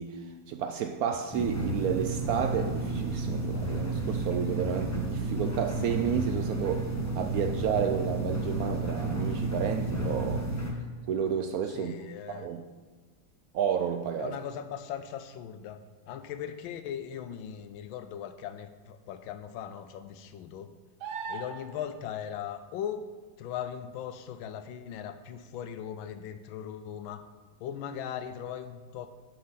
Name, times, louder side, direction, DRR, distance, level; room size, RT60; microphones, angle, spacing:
voice 1, 0.0-10.5 11.1-12.0 12.3-12.6 13.5-14.4, right 8 dB, 80° right, 0.8 m, -31 dB
sound 1, 1.3-10.7, right 2 dB, 10° left, 0.9 m, -31 dB
voice 2, 11.7-12.5 14.2-15.8 16.1-20.7 21.3-23.0 23.4-27.2 27.6-29.1, left 9 dB, 85° left, 1.4 m, -39 dB
sound 2, 21.0-21.9 25.5-25.6, right 5 dB, 60° right, 1.3 m, -38 dB
11.5 x 5.8 x 4.0 m
omnidirectional pair, 2.1 m